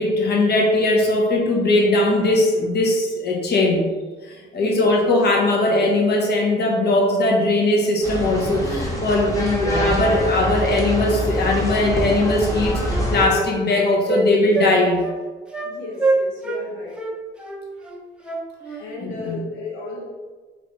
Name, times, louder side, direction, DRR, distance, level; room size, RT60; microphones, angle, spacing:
voice 1, 0.0-3.8 4.3-15.0 19.0-19.4, left 2 dB, 55° left, -1 dB, 1.0 m, -19 dB
voice 2, 4.6-5.0 15.6-17.0 18.8-20.0, left 2 dB, 90° left, -3 dB, 0.9 m, -33 dB
sound 1, 8.0-13.3, equal, 15° left, 1.2 m, -25 dB
Wind instrument woodwind instrument, 12.0-12.2 12.5-14.3 14.5-14.8 15.0-15.2 15.5-15.7 16.0-16.6 17.0-18.8, right 2 dB, 5° right, 0.6 m, -25 dB
3.2 x 3.1 x 4.1 m, 1.3 s
cardioid pair, 90°, 20 cm